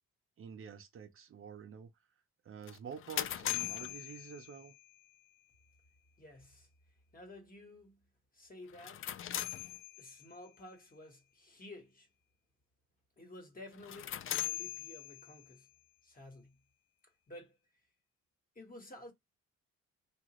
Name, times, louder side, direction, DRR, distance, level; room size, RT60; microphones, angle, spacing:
voice 1, 0.4-1.9 2.4-4.7, right 7 dB, 45° right, 0.6 m, -48 dB
sound 1, 2.7-4.9 8.7-10.4 13.7-15.5, left 12 dB, 45° left, 0.4 m, -40 dB
voice 2, 6.2-6.7 7.1-8.0 8.3-9.1 10.0-12.1 13.2-15.7 16.0-16.6 17.3-17.6 18.5-19.1, left 1 dB, 30° left, 1.3 m, -52 dB
2.9 x 2.4 x 2.9 m
cardioid pair, 90°, 30 cm